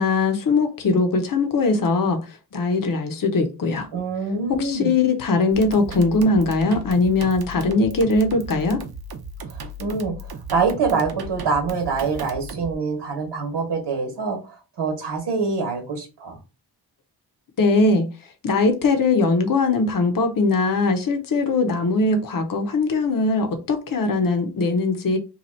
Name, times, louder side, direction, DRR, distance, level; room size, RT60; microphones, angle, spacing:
voice 1, 0.0-3.9 4.5-8.8 17.6-18.1 18.4-25.2, left 3 dB, 55° left, 0.8 m, -20 dB
voice 2, 3.9-4.9 9.5-16.4, right 4 dB, 90° right, 1.1 m, -25 dB
sound 1, 5.5-12.7, right 2 dB, 65° right, 0.7 m, -36 dB
2.8 x 2.3 x 4.2 m
wide cardioid pair, 95°, 40 cm